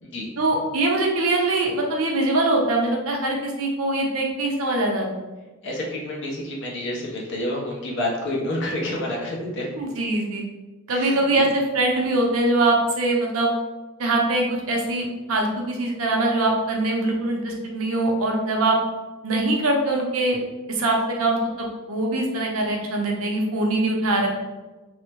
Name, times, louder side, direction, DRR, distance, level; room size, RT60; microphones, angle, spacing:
voice 1, 0.4-5.1 9.8-10.4 10.9-13.5 14.0-18.8 19.2-20.4 20.7-24.3, right 2 dB, 75° right, 0 dB, 0.7 m, -23 dB
voice 2, 5.6-9.7 10.9-11.5, left 1 dB, 60° left, -2 dB, 0.8 m, -29 dB
3.5 x 2.1 x 2.9 m, 1.2 s
head